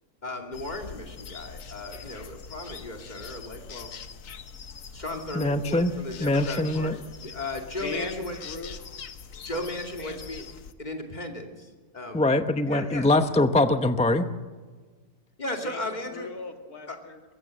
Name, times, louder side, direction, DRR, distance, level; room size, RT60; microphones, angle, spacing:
voice 1, 0.2-3.9 4.9-8.4 9.4-10.5 10.8-12.3 12.6-13.1 15.4-16.3 16.9-17.0, left 1 dB, 30° left, 3 dB, 2.8 m, -36 dB
sound 1, 0.5-10.7, left 6 dB, 60° left, 1.4 m, -43 dB
voice 2, 5.3-5.9 6.2-6.9 12.1-14.3, left 2 dB, 5° left, 9 dB, 0.5 m, -23 dB
voice 3, 7.8-8.8 10.0-10.3 15.6-17.2, left 3 dB, 80° left, 5 dB, 2.2 m, -38 dB
23.5 x 15.0 x 7.6 m, 1.4 s
omnidirectional pair, 1.6 m